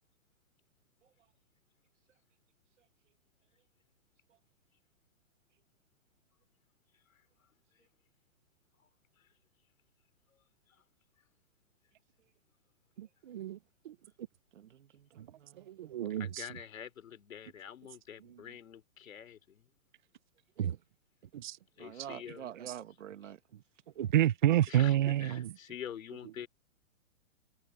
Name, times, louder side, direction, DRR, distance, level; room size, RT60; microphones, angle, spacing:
voice 1, 13.0-13.6 13.8-13.9 15.2-15.3 15.7-16.5 20.6-20.8 21.3-21.6 24.0-25.5, right 12 dB, 35° right, 0.9 m, -29 dB
voice 2, 14.5-15.9 21.8-23.4, right 10 dB, 65° right, 2.0 m, -47 dB
voice 3, 16.2-19.7 21.8-22.5 24.7-26.5, left 9 dB, 75° left, 3.6 m, -46 dB
hypercardioid pair, 175°, 40 cm